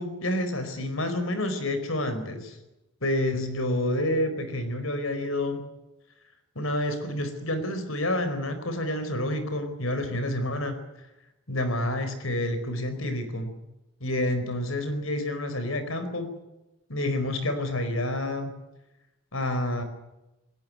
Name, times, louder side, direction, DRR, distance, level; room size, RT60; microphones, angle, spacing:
voice 1, 0.0-2.6 3.0-5.7 6.5-10.8 11.5-13.5 14.0-16.3 16.9-18.5 19.3-19.8, left 1 dB, 80° left, 10 dB, 4.5 m, -28 dB
21.0 x 18.0 x 9.5 m, 0.96 s
head